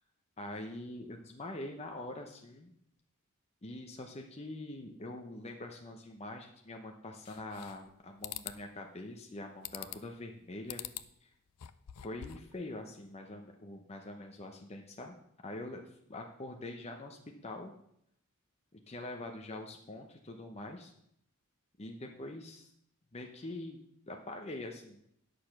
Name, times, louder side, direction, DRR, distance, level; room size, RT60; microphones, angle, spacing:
voice 1, 0.4-2.7 3.6-10.8 11.2-11.3 12.0-15.2 15.4-17.7 18.7-20.9 21.8-22.7 23.1-23.8 24.1-25.0, left 2 dB, 30° left, 3 dB, 0.8 m, -44 dB
sound 1, 7.3-7.9 8.2-8.6 9.6-10.2 10.7-11.1 11.5-12.5, left 12 dB, 90° left, 0.5 m, -44 dB
10.0 x 6.7 x 5.9 m, 0.73 s
head